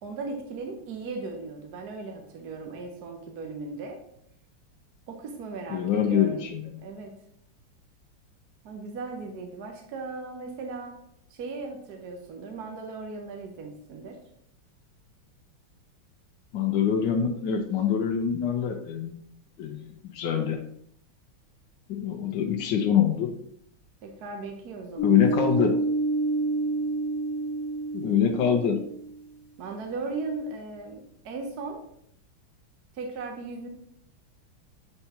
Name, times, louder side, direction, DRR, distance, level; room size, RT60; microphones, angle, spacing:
voice 1, 0.0-4.0 5.1-6.5 6.8-7.1 8.6-11.0 11.3-14.2 24.0-25.5 28.2-28.4 29.6-31.8 32.9-33.7, right 3 dB, 60° right, 3 dB, 1.1 m, -37 dB
voice 2, 5.7-6.7 16.5-19.1 19.6-20.6 21.9-23.3 25.0-25.7 27.9-28.8, left 8 dB, 70° left, 3 dB, 1.2 m, -25 dB
sound 1, 25.0-29.2, right 2 dB, 50° left, 1.4 m, -28 dB
7.9 x 4.6 x 2.9 m, 0.69 s
omnidirectional pair, 2.3 m